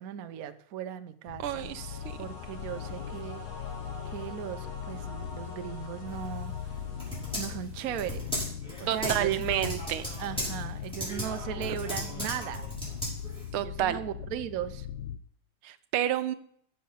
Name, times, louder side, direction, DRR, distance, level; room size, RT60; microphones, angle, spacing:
voice 1, 0.0-1.7 2.2-3.4 4.0-6.5 7.4-8.5 8.8-9.7 10.2-12.7 13.6-14.9, right 10 dB, 60° right, 10 dB, 0.9 m, -37 dB
sound 1, 1.3-15.2, left 9 dB, 70° left, 1.0 m, -40 dB
voice 2, 1.4-2.2 8.9-10.0 13.5-14.0 15.6-16.3, right 12 dB, 85° right, 13 dB, 1.6 m, -29 dB
sound 2, 1.5-7.6, left 2 dB, 85° left, 3.4 m, -47 dB
Typing, 6.1-13.5, equal, ahead, 5.7 m, -37 dB
11.5 x 7.6 x 5.7 m, 0.64 s
omnidirectional pair, 2.3 m